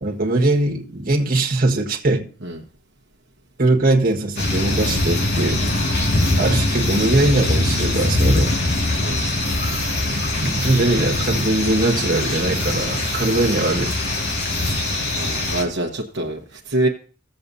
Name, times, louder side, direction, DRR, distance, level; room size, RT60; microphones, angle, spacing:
voice 1, 0.0-2.3 3.6-5.6 6.4-8.5 10.4-13.9, right 2 dB, 45° right, 1.5 m, -20 dB
sound 1, 4.4-15.6, left 2 dB, 55° left, 2.0 m, -22 dB
voice 2, 15.1-16.9, right 1 dB, 60° right, 1.1 m, -25 dB
16.5 x 7.5 x 2.7 m
head